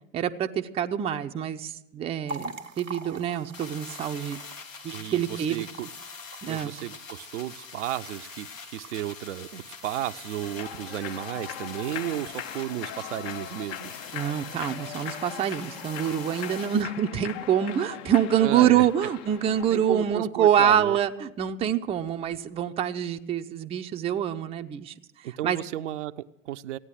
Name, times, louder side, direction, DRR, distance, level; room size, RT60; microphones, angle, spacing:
voice 1, 0.1-4.4 4.8-5.6 6.4-6.7 14.1-24.9 25.4-25.6, right 9 dB, 15° right, 7 dB, 0.5 m, -26 dB
sound 1, 2.3-16.7, right 2 dB, 90° right, 1.1 m, -47 dB
sound 2, 3.5-16.8, left 5 dB, 80° left, 1.3 m, -44 dB
voice 2, 4.9-5.9 6.4-13.9 18.4-18.9 19.7-21.0 25.2-26.8, right 13 dB, 65° right, 11 dB, 0.6 m, -34 dB
Human voice / Clapping / Cheering, 10.4-20.1, left 11 dB, 55° left, 0.8 m, -40 dB
15.5 x 9.5 x 7.5 m, 0.88 s
figure-of-eight pair, 85°, 38 cm